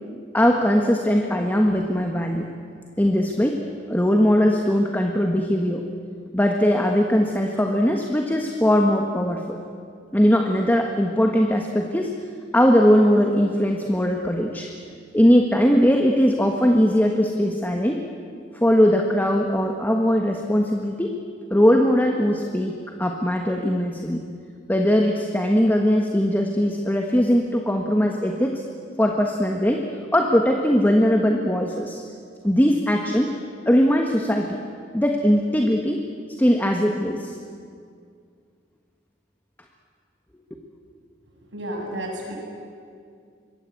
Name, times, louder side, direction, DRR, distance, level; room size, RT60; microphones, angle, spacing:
voice 1, 0.3-2.5 3.0-3.6 3.9-5.8 6.3-9.6 10.1-12.1 12.5-14.7 15.1-18.0 18.5-21.1 21.5-24.2 24.7-28.6 29.0-29.9 30.1-32.0 32.4-33.3 33.6-34.6 34.9-36.0 36.4-37.4, equal, 10° left, 2 dB, 1.4 m, -20 dB
voice 2, 41.5-42.4, right 1 dB, 80° right, 0 dB, 7.7 m, -31 dB
26.0 x 22.0 x 8.5 m, 2.3 s
head